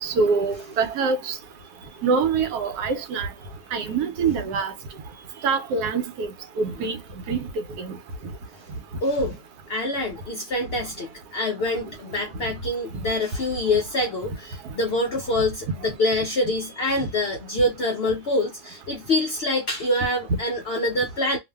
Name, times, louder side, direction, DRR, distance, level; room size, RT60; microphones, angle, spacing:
voice 1, 0.0-1.3 2.0-3.3 3.7-4.7 5.4-6.3 6.6-7.0 7.3-7.5 7.8-8.0, right 5 dB, 75° right, 1.1 m, -24 dB
voice 2, 9.0-9.4 9.7-21.4, left 1 dB, 75° left, 0.5 m, -25 dB
2.6 x 2.4 x 2.2 m
omnidirectional pair, 1.8 m